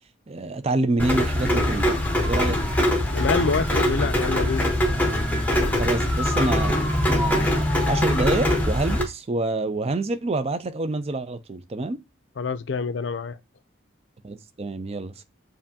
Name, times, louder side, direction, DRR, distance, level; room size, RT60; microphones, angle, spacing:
voice 1, 0.3-2.6 5.8-12.0 14.2-15.2, right 2 dB, 30° right, 0.4 m, -27 dB
Rain, 1.0-9.0, left 1 dB, 10° left, 0.9 m, -22 dB
voice 2, 3.1-4.7 12.4-13.3, left 4 dB, 65° left, 0.5 m, -26 dB
7.2 x 2.6 x 2.7 m
head